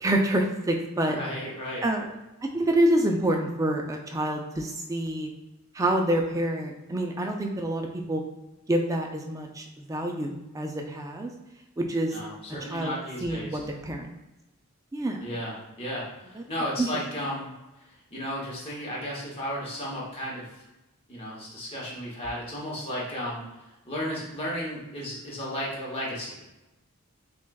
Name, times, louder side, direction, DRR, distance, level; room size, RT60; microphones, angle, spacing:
voice 1, 0.0-1.2 1.8-2.0 2.5-5.3 5.7-8.2 8.7-11.3 11.8-12.1 12.6-12.9 13.2-14.1 14.9-15.2 16.4-16.5 16.8-16.9, right 1 dB, 15° right, 2 dB, 0.3 m, -27 dB
voice 2, 1.0-1.8 12.1-13.6 15.2-17.5 17.9-20.6 21.1-26.4, equal, 25° left, -5 dB, 0.9 m, -34 dB
5.9 x 2.3 x 2.3 m, 1.0 s
head